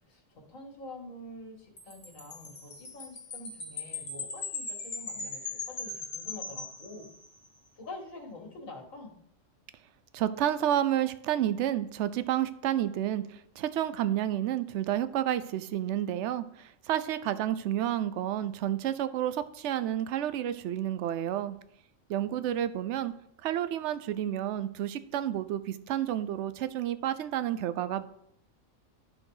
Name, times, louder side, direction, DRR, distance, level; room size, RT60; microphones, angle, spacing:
voice 1, 0.1-7.1 7.8-9.1, left 2 dB, 85° left, 1 dB, 2.2 m, -46 dB
Wind chime, 1.8-7.5, left 4 dB, 60° left, 1.9 m, -39 dB
voice 2, 10.1-21.6 22.1-23.1 23.4-28.1, right 11 dB, 70° right, 13 dB, 0.9 m, -30 dB
12.5 x 4.3 x 4.9 m, 0.71 s
omnidirectional pair, 1.3 m